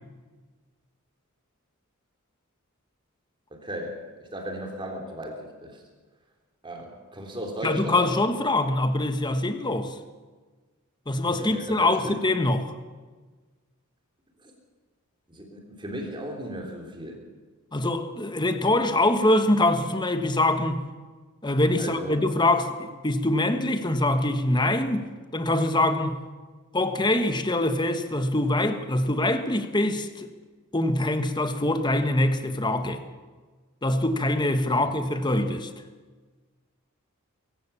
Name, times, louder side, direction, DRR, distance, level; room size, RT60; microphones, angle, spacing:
voice 1, 3.5-5.8 6.6-8.1 11.3-12.2 14.4-14.5 15.3-17.3 21.8-22.3, equal, 20° right, 3.5 m, -36 dB
voice 2, 7.6-9.9 11.1-12.7 17.7-20.8 21.4-26.2 26.7-30.3 30.7-33.0 33.8-35.7, left 1 dB, 20° left, 1.4 m, -24 dB
23.5 x 15.5 x 7.2 m
head